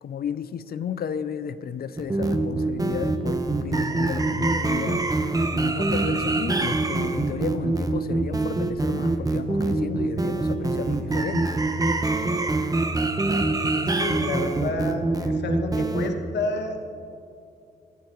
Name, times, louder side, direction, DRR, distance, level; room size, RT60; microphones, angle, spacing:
voice 1, 0.0-5.1 5.5-11.6, left 7 dB, 60° left, 14 dB, 0.5 m, -33 dB
sound 1, 2.0-16.1, right 2 dB, 20° right, 1.0 m, -24 dB
sound 2, 2.6-11.1, equal, 70° right, 2.4 m, -43 dB
voice 2, 13.6-16.8, left 3 dB, 75° left, 4 dB, 1.4 m, -30 dB
16.5 x 12.5 x 3.1 m, 2.6 s
supercardioid pair, 55°, 18 cm